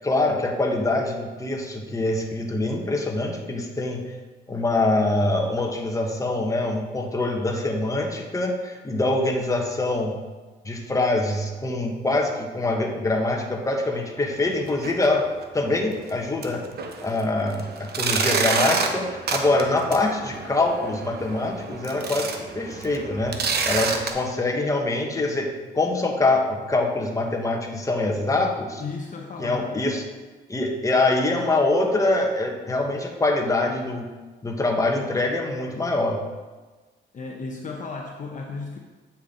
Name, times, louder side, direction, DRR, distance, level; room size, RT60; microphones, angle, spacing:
voice 1, 0.0-4.2 4.5-10.1 10.6-15.2 15.5-16.6 17.0-28.8 29.4-30.0 30.5-34.1 34.4-36.2, left 2 dB, 15° left, 1 dB, 1.3 m, -24 dB
sound 1, 14.7-15.1 15.4-15.5 16.0-16.1 16.4-24.1, right 5 dB, 55° right, 1.0 m, -28 dB
voice 2, 28.8-29.8 37.1-38.8, left 4 dB, 40° left, 0 dB, 0.9 m, -34 dB
8.6 x 5.8 x 3.8 m, 1.3 s
cardioid pair, 90°, 20 cm